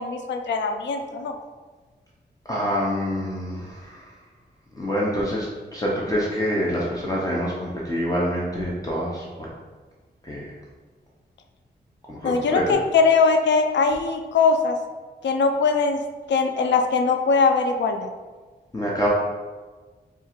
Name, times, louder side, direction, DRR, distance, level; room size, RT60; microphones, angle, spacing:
voice 1, 0.0-1.3 12.2-14.8 15.2-16.0 16.3-18.1, left 4 dB, 85° left, 5 dB, 0.4 m, -21 dB
voice 2, 2.4-4.1 4.7-9.5 10.2-10.5 12.1-12.8 18.7-19.1, equal, 20° left, -5 dB, 0.6 m, -26 dB
3.6 x 2.4 x 4.3 m, 1.4 s
wide cardioid pair, 115°, 18 cm